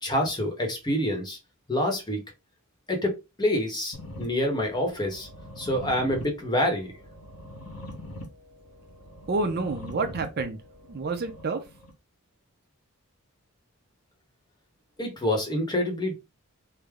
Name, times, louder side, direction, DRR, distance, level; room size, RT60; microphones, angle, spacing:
voice 1, 0.0-1.4 1.7-2.2 2.9-5.3 5.6-6.9 15.0-16.1, left 1 dB, 20° left, 0.9 m, -27 dB
sound 1, 3.9-11.9, left 1 dB, 85° left, 1.1 m, -43 dB
voice 2, 9.3-10.6 10.9-11.6, right 3 dB, 45° right, 0.5 m, -28 dB
3.4 x 2.0 x 3.4 m
head